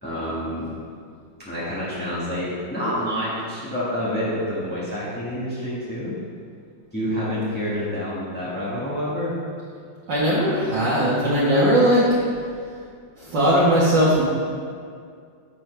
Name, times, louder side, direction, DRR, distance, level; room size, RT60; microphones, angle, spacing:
voice 1, 0.0-0.7 1.4-6.2 6.9-9.3, equal, 5° left, -10 dB, 1.5 m, -28 dB
voice 2, 10.1-12.0 13.3-14.2, equal, 65° right, -10 dB, 2.2 m, -18 dB
10.5 x 7.4 x 3.4 m, 2.2 s
omnidirectional pair, 2.1 m